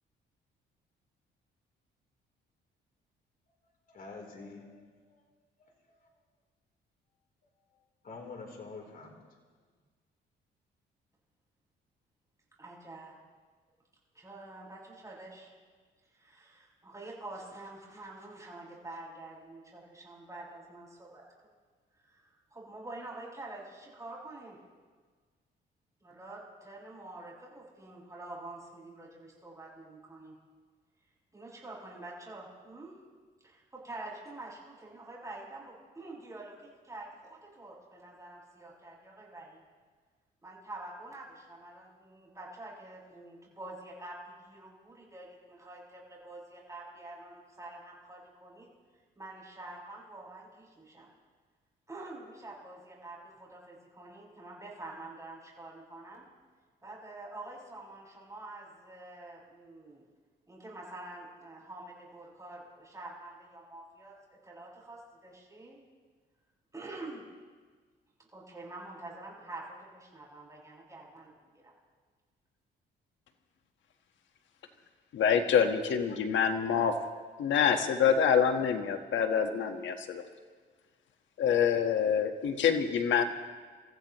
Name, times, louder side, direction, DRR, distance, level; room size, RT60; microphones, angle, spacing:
voice 1, 3.9-5.3 5.6-5.7 7.7-9.2, left 3 dB, 45° left, 1 dB, 3.5 m, -47 dB
voice 2, 12.6-13.1 14.1-15.5 16.1-21.3 21.9-24.6 26.0-30.3 31.3-33.0 33.4-39.6 40.4-48.7 49.2-51.1 51.9-56.2 56.8-60.0 60.5-64.1 64.4-65.8 66.7-67.2 68.3-71.7, right 2 dB, 15° right, -4 dB, 6.4 m, -47 dB
voice 3, 75.1-76.9 77.4-80.2 81.4-83.2, left 7 dB, 70° left, 6 dB, 1.4 m, -26 dB
27.5 x 15.0 x 3.1 m, 1.5 s
cardioid pair, 90°, 20 cm